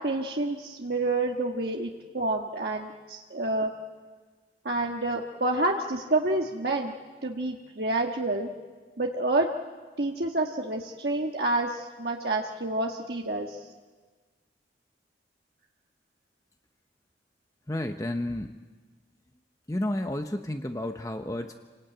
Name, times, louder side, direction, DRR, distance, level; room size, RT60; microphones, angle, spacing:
voice 1, 0.0-3.7 4.6-6.9 7.2-8.5 9.0-9.5 10.0-13.6, right 2 dB, 65° right, 1 dB, 1.5 m, -28 dB
voice 2, 17.7-18.5 19.7-21.6, left 1 dB, 20° left, 6 dB, 0.8 m, -31 dB
27.0 x 18.5 x 9.1 m, 1.4 s
head